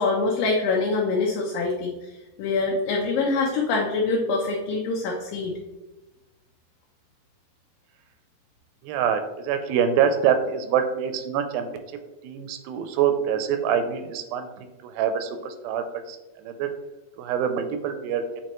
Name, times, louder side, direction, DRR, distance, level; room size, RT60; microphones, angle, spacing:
voice 1, 0.0-1.9 2.4-5.5, left 3 dB, 80° left, -1 dB, 2.4 m, -24 dB
voice 2, 8.8-11.8 12.2-16.7 17.2-18.2, right 8 dB, 90° right, 8 dB, 2.4 m, -25 dB
7.6 x 4.4 x 3.0 m, 1.1 s
omnidirectional pair, 4.1 m